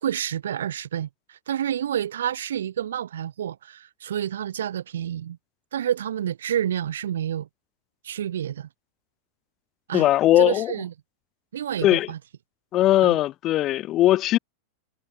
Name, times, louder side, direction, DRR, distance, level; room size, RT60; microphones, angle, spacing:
voice 1, 0.0-5.4 5.7-7.5 8.0-8.7 9.9-10.1 10.4-10.9 11.5-12.2 13.0-13.2, right 10 dB, 65° right, 3.1 m, -29 dB
voice 2, 9.9-10.7 11.8-12.1 12.7-14.4, left 14 dB, 35° left, 0.6 m, -19 dB
figure-of-eight pair, 90°, 0 cm